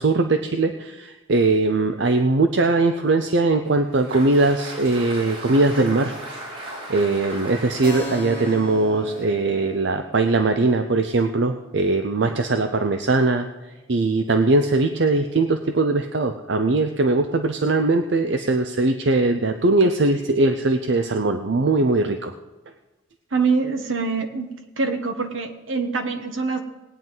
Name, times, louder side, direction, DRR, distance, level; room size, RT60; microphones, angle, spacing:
voice 1, 0.0-6.1 6.9-13.5 13.9-22.3, right 2 dB, 55° right, 7 dB, 0.6 m, -20 dB
Applause, 3.6-10.0, right 1 dB, 90° right, 5.1 m, -38 dB
Keyboard (musical), 7.8-15.1, right 1 dB, 25° right, 5.1 m, -40 dB
voice 2, 23.3-26.6, right 4 dB, 75° right, 6 dB, 1.2 m, -24 dB
19.0 x 9.1 x 3.9 m, 1.1 s
head